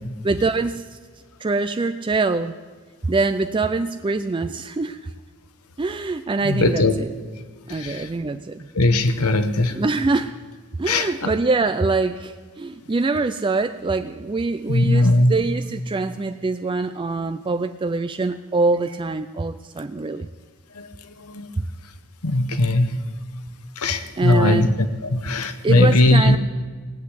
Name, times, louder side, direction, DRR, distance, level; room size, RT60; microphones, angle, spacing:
voice 1, 0.2-1.0 1.4-2.6 3.0-5.0 5.8-7.1 7.7-8.7 9.7-10.3 10.8-20.3 24.2-24.7 25.6-26.4, right 3 dB, 20° right, 9 dB, 0.3 m, -24 dB
voice 2, 6.4-6.9 7.7-8.1 8.7-9.8 10.9-11.3 14.7-15.3 20.8-20.9 21.3-21.5 22.2-22.9 23.8-24.7 25.1-26.4, left 2 dB, 80° left, 10 dB, 1.1 m, -19 dB
19.0 x 8.2 x 8.2 m, 1.5 s
head